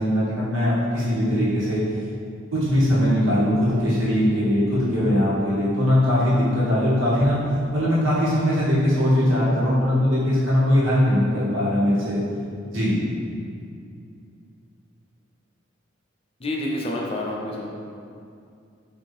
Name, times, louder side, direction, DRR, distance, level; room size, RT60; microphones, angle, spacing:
voice 1, 0.0-1.8 2.5-7.4 7.7-12.2 12.7-13.0, equal, 75° right, -8 dB, 1.3 m, -20 dB
voice 2, 16.4-17.7, left 1 dB, 30° left, -2 dB, 0.5 m, -28 dB
4.8 x 2.7 x 3.2 m, 2.4 s
head